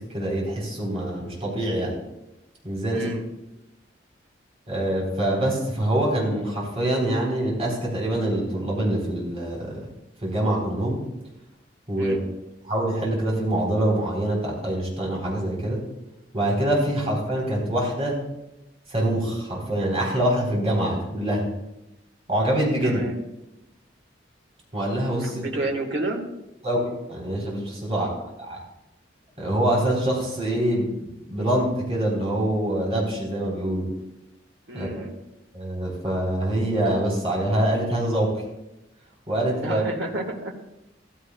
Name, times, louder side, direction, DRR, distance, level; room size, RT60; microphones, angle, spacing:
voice 1, 0.0-2.0 2.6-3.1 4.7-9.8 10.2-11.0 11.9-12.2 12.7-15.8 16.3-18.2 18.9-21.5 22.3-23.0 24.7-25.6 26.6-28.6 29.4-33.9 34.7-35.0 35.5-38.3 39.3-39.8, right 1 dB, 35° right, -3 dB, 3.8 m, -25 dB
voice 2, 2.9-3.2 11.9-12.2 22.8-23.1 25.2-26.2 27.9-28.1 34.7-35.1 39.6-40.5, right 2 dB, 80° right, 2 dB, 1.5 m, -30 dB
14.5 x 14.0 x 2.3 m, 0.92 s
head